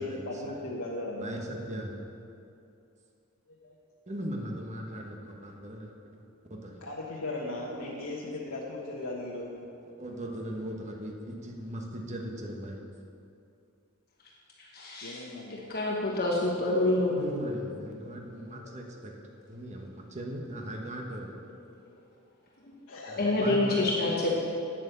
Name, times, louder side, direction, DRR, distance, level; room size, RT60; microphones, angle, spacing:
voice 1, 0.0-1.3 3.6-3.8 6.8-9.6 15.0-15.7 22.9-23.5 23.8-23.9, left 2 dB, 85° left, -4 dB, 1.2 m, -37 dB
voice 2, 1.2-2.0 4.1-5.9 6.5-6.8 7.7-8.6 9.0-9.1 9.6-12.8 17.2-19.1 19.5-21.3 23.1-23.8, right 1 dB, 35° right, 0 dB, 1.2 m, -39 dB
voice 3, 14.6-15.2 15.7-17.1 23.2-24.3, left 2 dB, 45° left, -3 dB, 1.3 m, -27 dB
9.2 x 9.1 x 6.7 m, 2.6 s
head